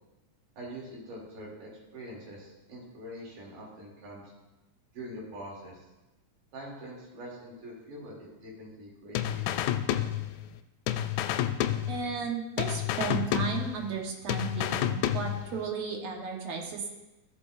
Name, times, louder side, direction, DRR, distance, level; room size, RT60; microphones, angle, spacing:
voice 1, 0.6-4.2 4.9-5.8 6.5-9.7, equal, 80° right, -4 dB, 4.3 m, -44 dB
sound 1, 9.2-10.6 10.9-12.3 12.6-14.0 14.3-15.6, left 12 dB, 80° left, 2.0 m, -30 dB
voice 2, 11.9-16.9, right 6 dB, 60° right, 1 dB, 2.2 m, -34 dB
14.5 x 8.0 x 2.5 m, 1.0 s
omnidirectional pair, 3.7 m